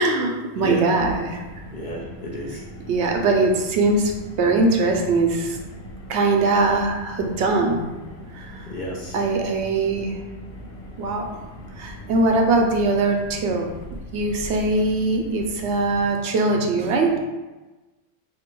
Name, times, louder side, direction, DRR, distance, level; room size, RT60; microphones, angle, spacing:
voice 1, 0.0-1.4 2.9-4.1 4.4-5.6 6.1-7.9 8.3-8.7 9.1-10.2 11.0-11.5 11.8-13.7 14.1-17.2, right 3 dB, 75° right, 2 dB, 0.8 m, -21 dB
Car, 0.9-16.1, equal, 85° left, 1.0 m, -40 dB
voice 2, 1.7-2.6 8.7-9.2, left 1 dB, 50° left, -2 dB, 0.6 m, -30 dB
2.9 x 2.7 x 4.4 m, 1.1 s
omnidirectional pair, 1.2 m